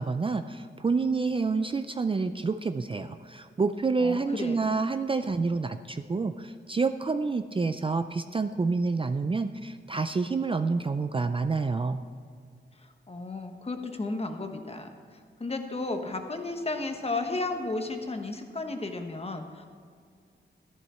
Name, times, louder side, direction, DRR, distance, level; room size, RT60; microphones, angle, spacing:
voice 1, 0.0-12.0, right 4 dB, 25° right, 9 dB, 0.4 m, -28 dB
voice 2, 4.0-4.6 12.8-14.9 15.4-19.7, left 2 dB, 30° left, 5 dB, 1.2 m, -33 dB
13.0 x 11.5 x 4.3 m, 2.1 s
wide cardioid pair, 110°, 20 cm